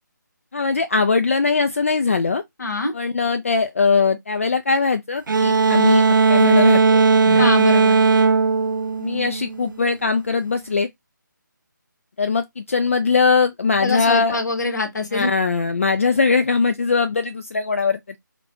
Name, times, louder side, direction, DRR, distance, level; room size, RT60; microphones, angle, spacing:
voice 1, 0.5-2.4 2.9-7.4 9.0-10.9 12.2-14.4 15.1-18.2, left 4 dB, 45° left, 0.3 m, -21 dB
voice 2, 2.6-2.9 7.4-8.0 13.8-15.3, left 3 dB, 60° left, 1.1 m, -24 dB
sound 1, 5.3-9.7, right 4 dB, 85° right, 0.4 m, -17 dB
3.9 x 2.2 x 2.8 m
figure-of-eight pair, 170°, 11 cm